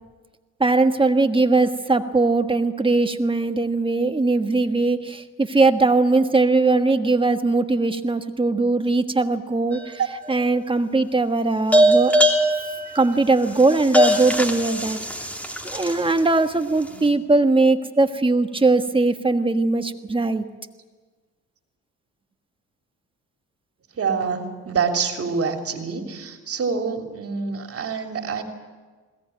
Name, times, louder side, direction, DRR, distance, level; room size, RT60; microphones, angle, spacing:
voice 1, 0.6-10.0 10.3-12.1 12.9-15.0 15.6-20.4, right 3 dB, 15° right, 7 dB, 1.5 m, -20 dB
sound 1, 9.7-10.3 11.7-16.2, equal, 5° left, 3.1 m, -21 dB
voice 2, 24.0-28.4, right 5 dB, 50° right, 4 dB, 3.2 m, -26 dB
21.0 x 17.5 x 9.3 m, 1.4 s
cardioid pair, 90°, 30 cm